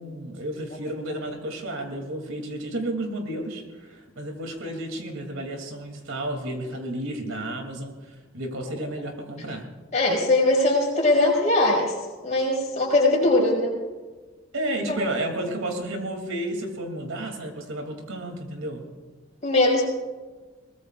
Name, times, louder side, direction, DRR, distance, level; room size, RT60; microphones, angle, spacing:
voice 1, 0.0-9.6 14.5-18.8, right 1 dB, 85° right, 3 dB, 2.9 m, -32 dB
voice 2, 9.9-11.9 12.2-13.7 14.9-15.0 19.4-19.9, left 2 dB, 35° left, -3 dB, 5.3 m, -21 dB
22.5 x 20.0 x 2.5 m, 1.3 s
head